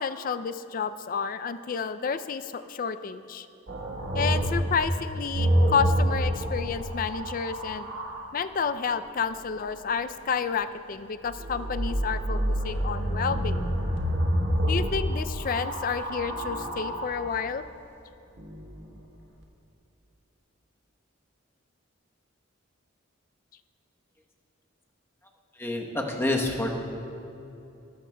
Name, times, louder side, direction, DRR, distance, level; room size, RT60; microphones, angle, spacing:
voice 1, 0.0-3.5 4.1-7.9 8.3-13.7 14.7-17.6, left 6 dB, 45° left, 12 dB, 0.4 m, -30 dB
sound 1, 3.7-8.3 11.3-17.4 18.4-19.0, equal, 75° right, 1.5 m, -28 dB
voice 2, 25.6-26.7, left 2 dB, 10° left, 0 dB, 1.0 m, -27 dB
19.5 x 13.5 x 2.2 m, 2.8 s
head